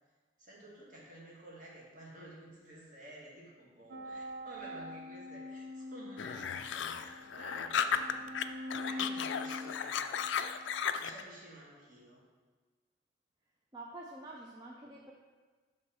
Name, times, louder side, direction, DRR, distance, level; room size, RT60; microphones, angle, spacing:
voice 1, 0.4-8.3 8.8-10.2 11.0-12.2, right 1 dB, 45° right, -4 dB, 1.7 m, -52 dB
sound 1, 3.9-10.8, left 1 dB, 75° right, 0.5 m, -45 dB
sound 2, 6.2-8.4 8.7-11.2, left 8 dB, 80° left, 0.3 m, -34 dB
voice 2, 13.7-15.1, right 2 dB, 20° right, -2 dB, 0.5 m, -47 dB
7.5 x 3.1 x 6.0 m, 1.4 s
head